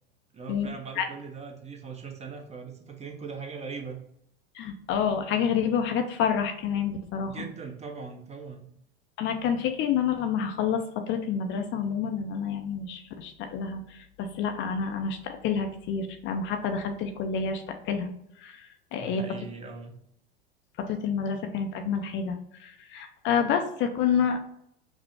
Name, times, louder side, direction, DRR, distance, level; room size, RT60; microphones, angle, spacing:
voice 1, 0.3-4.0 7.3-8.7 19.0-20.0, right 5 dB, 20° right, 3 dB, 0.7 m, -40 dB
voice 2, 4.5-7.4 9.2-18.1 18.4-19.2 20.8-24.4, left 7 dB, 40° left, 6 dB, 0.5 m, -28 dB
5.2 x 2.0 x 3.2 m, 0.73 s
hypercardioid pair, 80°, 30 cm